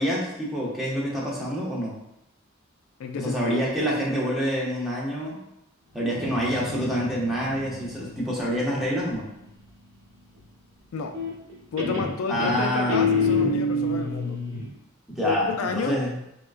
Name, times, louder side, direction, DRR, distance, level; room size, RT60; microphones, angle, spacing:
voice 1, 0.0-2.0 3.2-5.4 5.9-9.3 12.3-13.0 15.1-16.2, equal, ahead, -6 dB, 0.7 m, -27 dB
voice 2, 3.0-3.6 10.9-11.2 11.7-14.4 15.2-16.0, left 5 dB, 85° left, 5 dB, 0.3 m, -30 dB
Guitar, 6.1-9.6 11.1-11.5 11.8-14.7, left 3 dB, 65° right, 0.9 m, -28 dB
3.6 x 2.2 x 2.4 m, 0.81 s
head